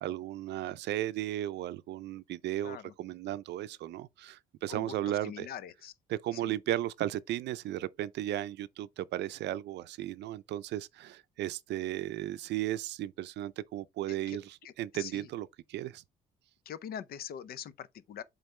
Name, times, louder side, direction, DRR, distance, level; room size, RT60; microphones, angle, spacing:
voice 1, 0.0-5.5 6.1-16.0, right 13 dB, 70° right, 0.5 m, -35 dB
voice 2, 2.6-2.9 4.7-5.9 6.3-6.6 14.1-14.7 15.0-15.3 16.7-18.2, left 9 dB, 55° left, 0.6 m, -43 dB
8.0 x 3.9 x 3.2 m
cardioid pair, 160°, 18 cm